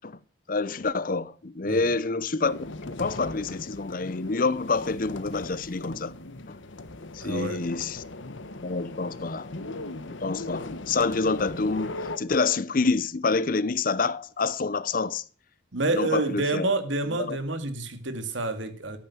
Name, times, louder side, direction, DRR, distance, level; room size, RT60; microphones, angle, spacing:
voice 1, 0.5-6.2 6.5-6.6 7.1-8.0 8.6-9.5 10.1-11.9 12.2-15.2 15.9-16.7 17.3-17.4, left 4 dB, 45° left, 0.7 m, -27 dB
sound 1, 2.4-12.2, left 2 dB, 80° left, 1.2 m, -38 dB
voice 2, 7.2-7.6 15.7-19.0, right 2 dB, 80° right, 2.4 m, -28 dB
13.5 x 8.9 x 7.2 m
head